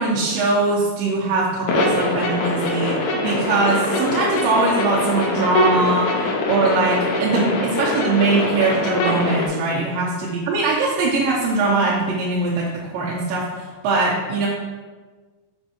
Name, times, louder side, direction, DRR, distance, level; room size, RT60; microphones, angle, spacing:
voice 1, 0.0-14.5, right 3 dB, 90° right, -6 dB, 2.6 m, -21 dB
sound 1, 1.7-9.5, left 2 dB, 90° left, 2.7 m, -23 dB
6.4 x 5.3 x 2.9 m, 1.3 s
omnidirectional pair, 3.9 m